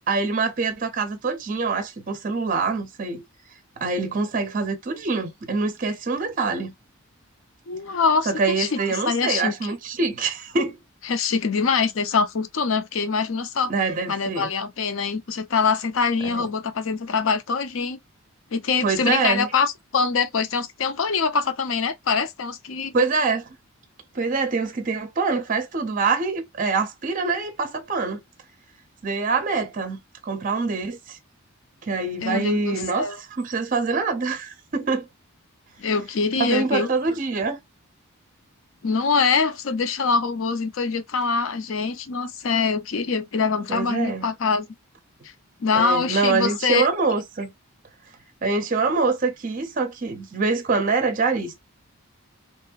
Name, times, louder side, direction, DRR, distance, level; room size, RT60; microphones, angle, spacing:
voice 1, 0.1-3.2 3.8-6.7 8.3-10.8 13.7-14.5 16.2-16.5 18.8-19.5 22.9-23.5 24.1-28.2 29.0-31.2 31.8-35.1 36.4-37.6 43.7-44.3 45.7-47.5 48.4-51.6, right 4 dB, 35° right, 0.5 m, -25 dB
voice 2, 7.7-8.8 9.1-9.5 11.1-13.7 14.1-18.0 18.5-22.9 32.2-33.2 35.8-36.9 38.8-44.7 45.6-46.9, left 5 dB, 60° left, 0.5 m, -24 dB
2.9 x 2.6 x 2.2 m
head